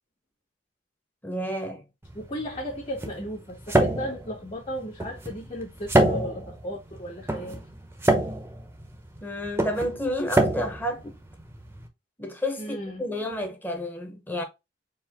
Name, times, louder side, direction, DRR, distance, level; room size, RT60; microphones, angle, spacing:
voice 1, 1.2-1.8 9.2-11.2 12.2-14.4, left 1 dB, 10° left, 1.0 m, -30 dB
sound 1, 2.0-11.9, right 1 dB, 15° right, 0.8 m, -27 dB
voice 2, 2.1-7.6 12.6-13.0, equal, 30° left, 1.6 m, -35 dB
4.7 x 2.7 x 3.5 m
head